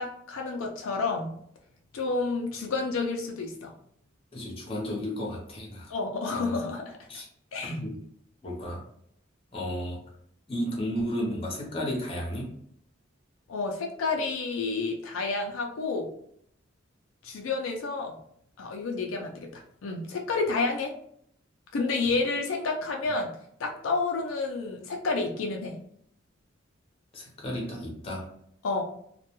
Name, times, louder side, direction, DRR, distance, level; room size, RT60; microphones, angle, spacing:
voice 1, 0.0-1.3 1.9-3.7 5.9-7.0 7.5-7.7 13.5-16.1 17.2-18.2 18.6-20.9 21.7-25.8 28.6-28.8, left 3 dB, 80° left, 2 dB, 0.4 m, -30 dB
voice 2, 4.3-5.9 6.3-6.5 7.1-7.3 7.7-8.0 8.4-8.8 9.5-10.0 10.5-12.5 22.0-22.1 27.1-28.3, equal, 30° left, -2 dB, 0.7 m, -33 dB
2.3 x 2.2 x 2.9 m, 0.67 s
head